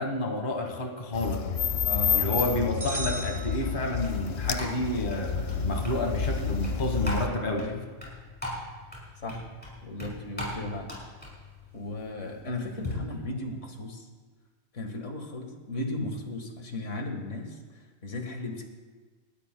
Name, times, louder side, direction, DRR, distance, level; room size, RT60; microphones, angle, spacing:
voice 1, 0.0-1.4 2.1-7.6, left 1 dB, 40° left, 3 dB, 1.5 m, -30 dB
sound 1, 1.1-7.3, left 6 dB, 60° left, 0.9 m, -29 dB
voice 2, 1.9-2.6 7.6-7.8 9.2-9.4 9.8-11.0 11.7-14.1 14.7-18.6, left 2 dB, 75° left, 3 dB, 1.9 m, -36 dB
sound 2, 2.8-4.4, right 1 dB, 35° right, 1.6 m, -37 dB
sound 3, 3.6-12.9, left 1 dB, 5° left, 5.1 m, -41 dB
29.0 x 13.0 x 2.2 m, 1.4 s
omnidirectional pair, 1.3 m